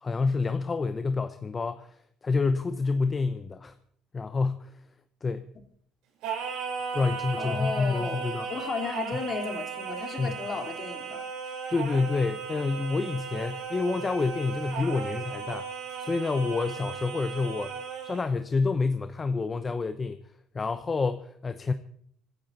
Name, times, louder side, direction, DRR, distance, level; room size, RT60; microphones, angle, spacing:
voice 1, 0.0-3.7 4.1-4.8 5.2-5.5 6.9-8.5 10.2-10.4 11.7-15.7 16.0-17.7 18.0-20.2 20.5-21.7, left 4 dB, 30° left, 10 dB, 0.9 m, -28 dB
Singing, 6.2-18.3, right 6 dB, 75° right, 5.7 m, -36 dB
voice 2, 7.4-11.3, left 5 dB, 45° left, 5 dB, 2.9 m, -34 dB
26.0 x 10.5 x 4.4 m, 0.64 s
supercardioid pair, 80°, 0 cm